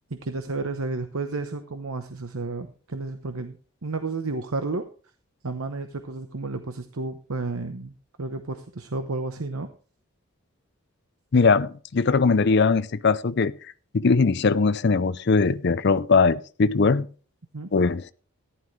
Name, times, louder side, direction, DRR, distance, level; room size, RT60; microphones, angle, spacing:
voice 1, 0.1-4.8 5.4-9.7 17.5-17.7, right 3 dB, 75° right, 1.0 m, -32 dB
voice 2, 11.3-13.5 13.9-17.1 17.7-18.1, left 4 dB, 50° left, 0.5 m, -20 dB
14.5 x 11.0 x 3.2 m
head